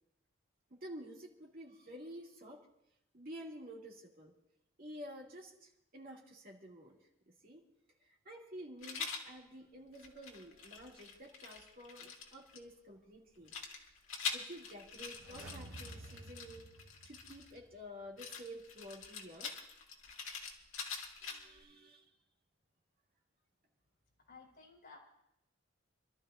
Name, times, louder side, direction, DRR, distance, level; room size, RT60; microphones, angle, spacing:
voice 1, 0.7-2.7 3.1-4.3 4.8-7.0 7.3-7.6 8.0-13.5 14.3-16.7 17.0-19.5 21.2-22.1, equal, 45° right, -2 dB, 2.4 m, -51 dB
Rattle, 8.8-9.3 9.9-12.6 13.5-17.6 18.2-21.6, left 5 dB, 70° left, 2.0 m, -44 dB
sound 1, 15.0-17.9 18.2-18.3, right 2 dB, 80° right, 1.5 m, -52 dB
voice 2, 24.3-25.0, left 4 dB, 45° left, -2 dB, 4.3 m, -56 dB
29.0 x 12.5 x 2.5 m, 0.83 s
head